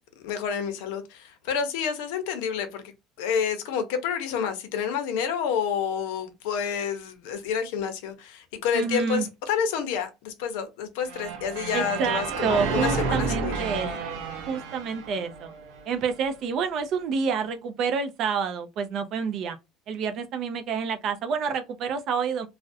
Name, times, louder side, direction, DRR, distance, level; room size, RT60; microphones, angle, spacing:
voice 1, 0.2-2.8 3.2-13.5, left 7 dB, 85° left, 0.6 m, -29 dB
voice 2, 8.7-9.3 11.7-14.2 14.5-15.5 15.9-19.6 19.9-22.5, right 6 dB, 40° right, 0.4 m, -28 dB
sound 1, 11.1-16.1, right 5 dB, 85° right, 0.6 m, -31 dB
2.4 x 2.0 x 2.5 m
cardioid pair, 170°, 0 cm